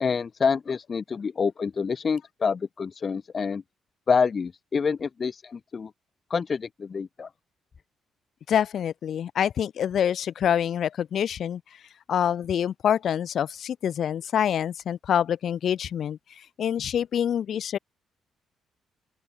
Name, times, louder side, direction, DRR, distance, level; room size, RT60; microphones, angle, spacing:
voice 1, 0.0-3.6 4.1-5.9 6.3-7.3, left 5 dB, 40° left, 0.7 m, -27 dB
voice 2, 8.5-11.6 12.1-16.2 16.6-17.8, left 9 dB, 60° left, 1.7 m, -26 dB
open air
cardioid pair, 90°, 0 cm